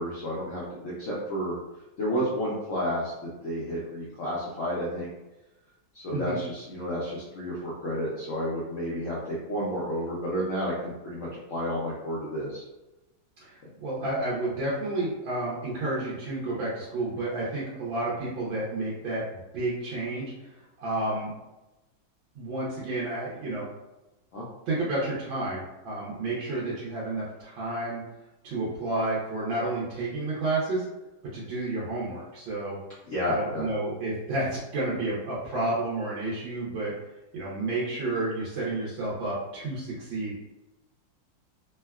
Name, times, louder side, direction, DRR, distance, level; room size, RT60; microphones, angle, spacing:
voice 1, 0.0-1.6 2.0-3.1 3.4-5.1 5.9-12.6 24.3-24.4 33.1-33.7, equal, 75° left, -6 dB, 0.7 m, -31 dB
voice 2, 13.8-19.2 19.5-20.3 20.8-21.3 22.4-23.7 24.7-28.0 28.4-30.8 31.3-32.8 33.3-36.9 37.3-40.5, right 2 dB, 85° right, -7 dB, 1.5 m, -30 dB
3.5 x 2.3 x 2.2 m, 1.0 s
omnidirectional pair, 2.1 m